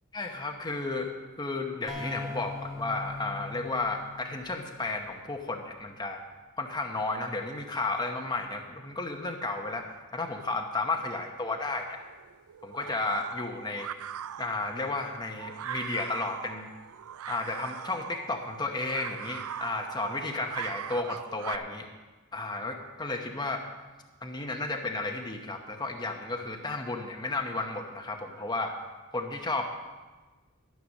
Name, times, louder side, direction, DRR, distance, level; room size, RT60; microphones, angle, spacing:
voice 1, 0.1-6.2 6.6-12.0 12.6-13.9 14.4-16.7 17.3-21.9 22.3-23.6 24.2-28.8 29.1-29.7, left 2 dB, 20° left, 2 dB, 0.9 m, -33 dB
sound 1, 1.9-5.5, left 3 dB, ahead, 2.7 m, -41 dB
sound 2, 11.7-21.6, right 9 dB, 70° right, 0.4 m, -41 dB
13.0 x 7.7 x 6.5 m, 1.2 s
head